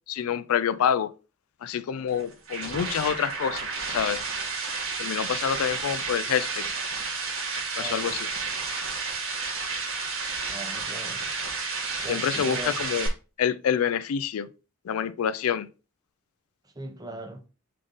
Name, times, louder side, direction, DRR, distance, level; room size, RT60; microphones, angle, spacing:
voice 1, 0.1-1.1 1.6-4.2 5.0-6.6 7.8-8.3 12.0-13.1 13.4-14.5 14.8-15.7, left 8 dB, 85° left, 0.4 m, -27 dB
sound 1, 2.1-13.1, right 4 dB, 75° right, 1.5 m, -31 dB
voice 2, 7.8-8.2 10.5-11.2 12.0-12.8 16.8-17.4, right 2 dB, 15° right, 0.6 m, -39 dB
3.8 x 3.7 x 3.7 m
head